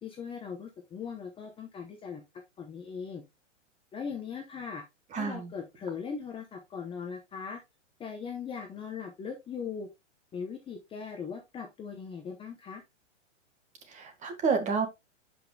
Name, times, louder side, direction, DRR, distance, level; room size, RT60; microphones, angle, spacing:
voice 1, 0.0-2.2 2.6-3.2 3.9-4.8 5.1-7.6 8.0-9.9 10.3-12.8, left 6 dB, 15° left, 0.8 m, -39 dB
voice 2, 5.1-5.5 13.9-14.9, right 5 dB, 20° right, 1.6 m, -29 dB
11.5 x 5.3 x 2.3 m
hypercardioid pair, 140°, 37 cm